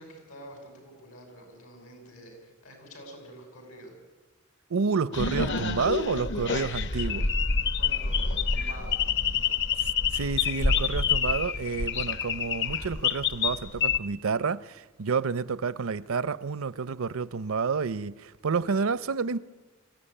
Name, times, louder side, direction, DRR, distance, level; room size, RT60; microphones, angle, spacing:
voice 1, 0.0-3.9 6.8-7.1 7.7-9.5, equal, 85° left, 6.5 m, -47 dB
voice 2, 4.7-7.3 9.8-19.4, right 5 dB, 70° right, 0.6 m, -29 dB
sound 1, 5.1-14.0, left 5 dB, 55° left, 1.0 m, -27 dB
23.5 x 15.0 x 10.0 m
head